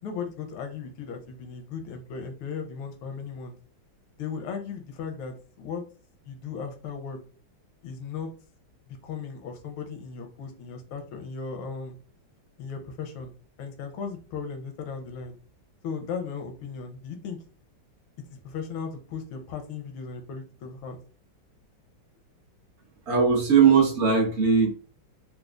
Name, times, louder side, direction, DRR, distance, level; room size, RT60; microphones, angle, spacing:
voice 1, 0.0-3.6 4.2-5.8 6.2-7.2 7.8-8.3 8.9-11.9 12.6-13.3 13.6-15.4 15.8-17.4 18.3-21.0, left 6 dB, 85° left, 5 dB, 1.5 m, -36 dB
voice 2, 23.1-24.7, right 6 dB, 45° right, -3 dB, 1.0 m, -19 dB
4.2 x 2.3 x 2.4 m, 0.39 s
omnidirectional pair, 2.2 m